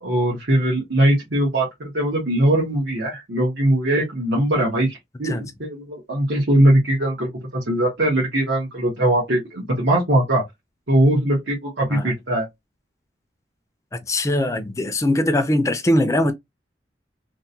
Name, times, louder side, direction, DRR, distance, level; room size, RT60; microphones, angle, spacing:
voice 1, 0.0-10.4 10.9-12.5, right 1 dB, 85° right, 1.3 m, -20 dB
voice 2, 14.1-16.3, left 1 dB, 15° left, 0.4 m, -21 dB
3.4 x 2.2 x 2.7 m
head